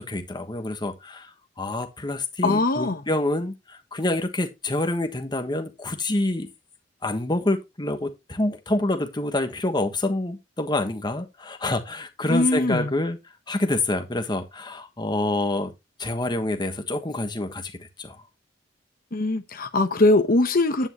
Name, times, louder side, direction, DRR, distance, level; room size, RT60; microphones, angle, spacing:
voice 1, 0.0-6.5 7.0-13.2 13.5-15.7 16.0-18.2, left 2 dB, 25° left, 1.3 m, -27 dB
voice 2, 2.4-3.0 12.3-12.9 19.1-20.9, left 2 dB, 50° left, 1.0 m, -21 dB
9.8 x 9.0 x 3.0 m
head